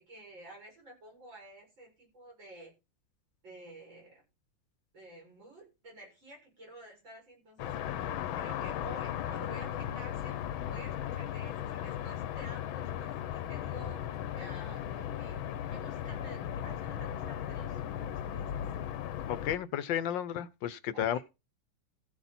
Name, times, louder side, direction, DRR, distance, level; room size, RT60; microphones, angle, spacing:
voice 1, 0.0-2.7 3.4-4.2 4.9-10.4 10.7-14.0 14.4-18.6 20.9-21.2, right 1 dB, 70° right, 6.8 m, -51 dB
sound 1, 7.6-19.6, left 10 dB, 90° left, 1.6 m, -37 dB
voice 2, 19.3-21.2, left 10 dB, 70° left, 1.4 m, -32 dB
15.0 x 8.2 x 4.2 m
omnidirectional pair, 2.1 m